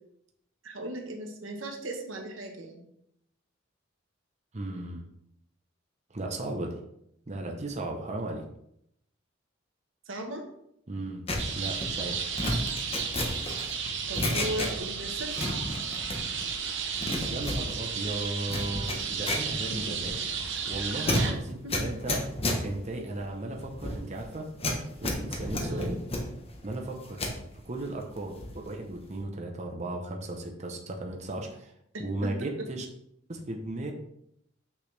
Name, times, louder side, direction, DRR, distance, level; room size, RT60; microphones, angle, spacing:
voice 1, 0.6-2.8 10.1-10.5 14.1-15.6 19.7-20.0 21.1-21.4 21.6-21.7 25.6-26.1 31.9-32.3 32.6-32.7, right 1 dB, 85° right, 3 dB, 1.2 m, -37 dB
voice 2, 4.5-5.0 6.1-6.8 7.3-8.4 10.9-11.2 11.5-12.2 16.6-20.1 20.7-22.3 22.6-24.5 25.0-26.0 26.6-27.3 27.6-31.7 32.0-32.8 33.3-33.9, right 2 dB, 35° right, 1 dB, 0.8 m, -36 dB
sound 1, 11.3-15.0 15.3-16.5 16.8-27.4 27.8-28.7 28.9-29.2, left 1 dB, 30° left, 1.1 m, -33 dB
sound 2, 11.4-21.3, right 6 dB, 65° right, 0.9 m, -33 dB
6.2 x 5.9 x 3.3 m, 0.74 s
head